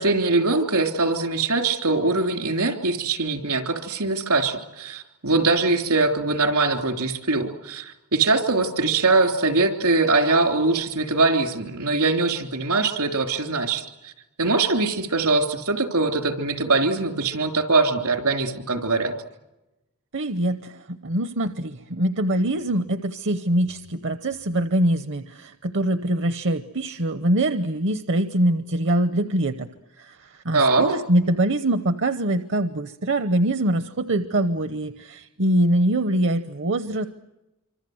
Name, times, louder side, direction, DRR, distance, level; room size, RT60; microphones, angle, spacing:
voice 1, 0.0-14.1 14.4-19.1 30.5-30.9, right 3 dB, 80° right, 5 dB, 3.3 m, -22 dB
voice 2, 20.1-29.7 30.0-37.1, right 1 dB, 55° right, 11 dB, 0.9 m, -23 dB
26.0 x 25.5 x 7.9 m, 0.98 s
head